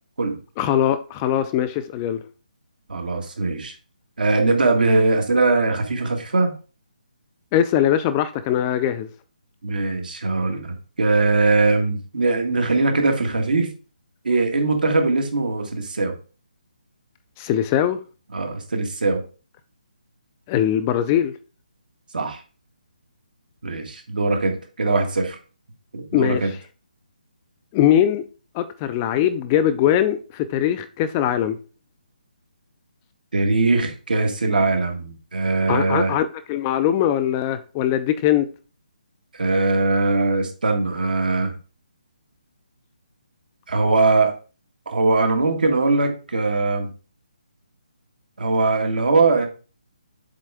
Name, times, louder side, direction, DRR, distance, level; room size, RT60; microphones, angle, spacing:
voice 1, 0.6-2.2 7.5-9.1 17.4-18.0 20.5-21.3 26.1-26.4 27.7-28.2 28.5-31.6 35.7-38.5, left 10 dB, 20° left, 0.3 m, -21 dB
voice 2, 2.9-3.7 4.2-6.5 9.6-13.7 14.2-16.1 18.3-19.2 22.1-22.4 23.6-25.4 25.9-26.5 33.3-36.2 39.3-41.5 43.7-44.3 44.8-46.9 48.4-49.5, right 3 dB, 75° right, 1.7 m, -21 dB
7.5 x 3.6 x 3.4 m
hypercardioid pair, 160°, 5 cm